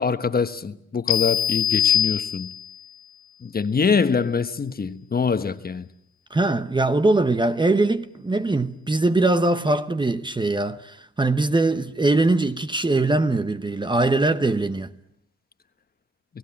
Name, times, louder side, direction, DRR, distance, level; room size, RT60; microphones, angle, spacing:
voice 1, 0.0-2.5 3.4-5.9, left 5 dB, 30° left, 1.3 m, -24 dB
sound 1, 1.1-2.8, left 10 dB, 65° left, 1.1 m, -22 dB
voice 2, 6.3-14.9, right 2 dB, 15° right, 1.0 m, -21 dB
29.0 x 17.5 x 8.7 m
cardioid pair, 90°, 30 cm